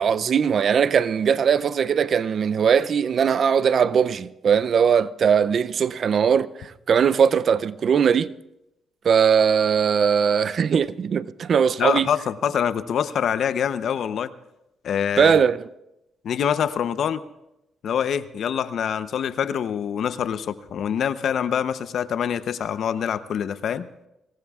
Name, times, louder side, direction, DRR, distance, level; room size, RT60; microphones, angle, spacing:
voice 1, 0.0-8.3 9.0-12.1 15.2-15.6, right 7 dB, 55° right, 0.5 m, -20 dB
voice 2, 11.8-14.3 14.8-15.3 16.2-17.2 17.8-23.9, left 8 dB, 65° left, 0.7 m, -25 dB
24.5 x 18.5 x 2.4 m
cardioid pair, 90°, 0 cm